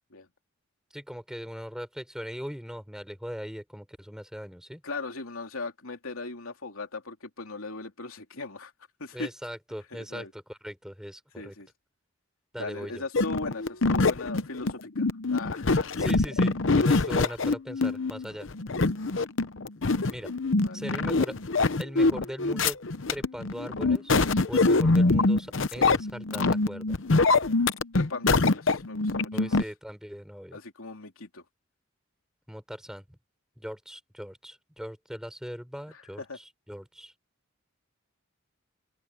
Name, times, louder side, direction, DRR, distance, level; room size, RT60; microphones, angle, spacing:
voice 1, 0.9-4.8 9.1-11.6 12.5-13.0 16.0-18.5 20.1-20.3 20.7-21.4 21.8-22.8 23.1-24.2 24.5-27.0 29.3-30.6 32.5-33.2 33.6-37.1, equal, 5° right, 5.2 m, -39 dB
voice 2, 4.8-8.7 9.0-9.3 9.9-10.3 11.4-11.7 12.6-15.9 20.6-20.8 27.9-29.6 30.5-31.4 35.9-36.4, left 3 dB, 85° left, 3.0 m, -38 dB
sound 1, 13.1-29.6, left 3 dB, 65° left, 0.8 m, -24 dB
open air
head